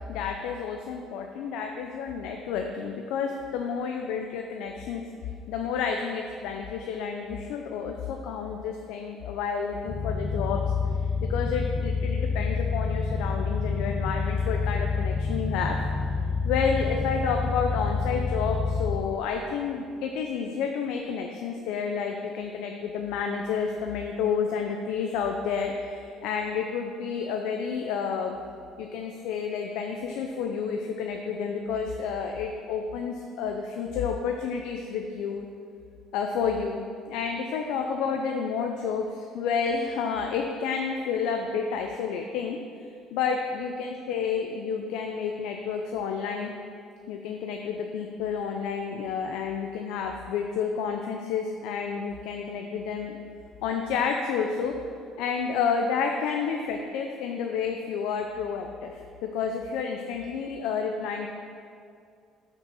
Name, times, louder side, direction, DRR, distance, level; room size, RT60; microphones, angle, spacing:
voice 1, 0.0-5.0 5.5-10.6 11.3-15.8 16.4-28.4 28.8-35.5 36.1-42.6 43.1-46.5 47.1-53.2 53.6-54.8 55.2-61.3, left 6 dB, 80° left, 3 dB, 0.5 m, -30 dB
sound 1, 9.9-19.0, left 4 dB, 30° left, 0.6 m, -28 dB
6.1 x 5.3 x 5.6 m, 2.3 s
cardioid pair, 175°, 0 cm